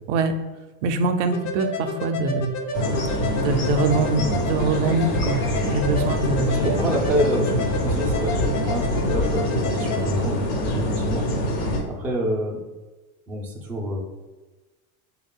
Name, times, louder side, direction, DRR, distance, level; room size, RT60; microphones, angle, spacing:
voice 1, 0.8-2.5 3.3-6.5, right 3 dB, 55° right, 7 dB, 0.5 m, -24 dB
sound 1, 1.3-10.0, left 2 dB, 40° left, 0.6 m, -31 dB
sound 2, 2.7-11.8, equal, 70° left, 1.3 m, -25 dB
voice 2, 6.4-11.5 11.9-12.6 13.3-14.0, equal, 5° right, -2 dB, 0.3 m, -27 dB
3.2 x 2.4 x 3.6 m, 1.2 s
supercardioid pair, 115°, 43 cm